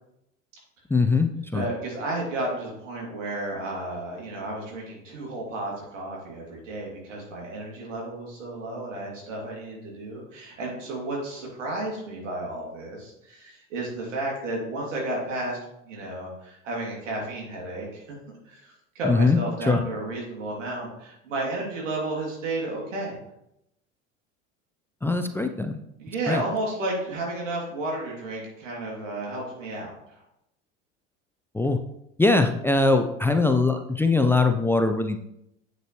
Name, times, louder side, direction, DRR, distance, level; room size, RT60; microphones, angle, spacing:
voice 1, 0.9-1.6 19.0-19.8 25.0-25.8 26.3-26.4 31.5-31.8 32.2-35.2, left 3 dB, 5° left, 7 dB, 0.5 m, -22 dB
voice 2, 1.5-15.6 15.9-18.2 18.5-23.2 26.0-30.2, right 2 dB, 85° right, -2 dB, 2.9 m, -32 dB
8.1 x 6.5 x 3.2 m, 0.81 s
hypercardioid pair, 80°, 37 cm